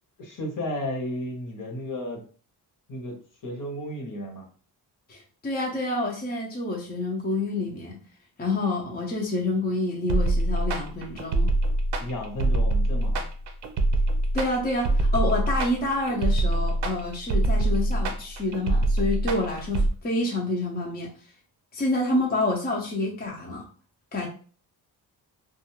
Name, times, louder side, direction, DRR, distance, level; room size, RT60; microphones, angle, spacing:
voice 1, 0.2-2.2 2.9-3.1 3.4-4.4 12.0-13.3, left 1 dB, 50° left, 1 dB, 1.0 m, -33 dB
voice 2, 5.1-8.0 8.4-11.5 14.3-21.1 21.7-23.6 24.1-24.3, left 2 dB, 25° left, -2 dB, 0.6 m, -28 dB
sound 1, 10.1-19.9, right 2 dB, 90° right, 0.6 m, -24 dB
2.4 x 2.3 x 3.0 m, 0.41 s
cardioid pair, 100°, 40 cm